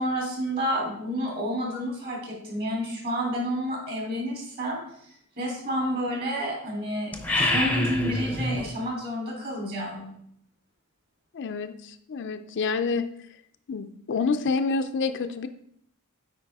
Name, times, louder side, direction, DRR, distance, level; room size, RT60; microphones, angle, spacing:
voice 1, 0.0-4.8 5.4-7.1 7.4-10.1, equal, 45° right, -2 dB, 3.0 m, -30 dB
sound 1, 7.1-8.7, left 1 dB, 5° left, 0.6 m, -26 dB
voice 2, 11.3-13.1 13.7-15.5, left 4 dB, 55° left, 9 dB, 0.4 m, -28 dB
8.9 x 4.7 x 3.5 m, 0.69 s
head